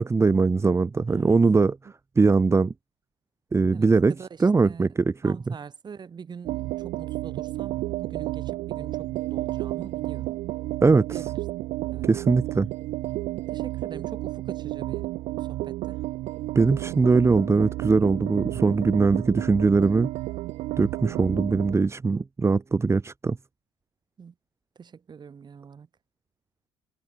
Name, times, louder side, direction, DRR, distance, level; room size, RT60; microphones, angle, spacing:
voice 1, 0.0-1.8 2.2-2.7 3.5-4.1 4.4-5.5 10.8-11.2 12.0-12.7 16.5-20.1 20.8-23.4, right 4 dB, 20° right, 1.3 m, -21 dB
voice 2, 1.1-1.4 3.7-10.4 11.1-11.4 11.9-12.1 13.5-15.1 15.4-16.0 16.9-17.3 24.2-24.3 24.7-25.9, right 6 dB, 35° right, 6.4 m, -43 dB
sound 1, 6.4-21.8, right 17 dB, 65° right, 0.8 m, -32 dB
supercardioid pair, 75°, 12 cm